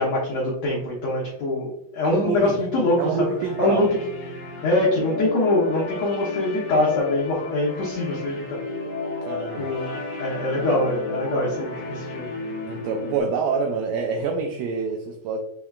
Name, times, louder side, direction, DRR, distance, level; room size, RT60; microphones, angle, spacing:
voice 1, 0.0-3.1 3.6-3.8 4.6-8.6 9.6-12.3, left 2 dB, 75° left, -4 dB, 1.6 m, -24 dB
voice 2, 2.0-2.6 3.0-3.9 9.2-9.7 12.7-15.4, right 5 dB, 85° right, 3 dB, 1.9 m, -26 dB
sound 1, 2.1-13.2, left 2 dB, 60° left, 2.8 m, -33 dB
6.7 x 3.1 x 2.3 m, 0.79 s
omnidirectional pair, 4.2 m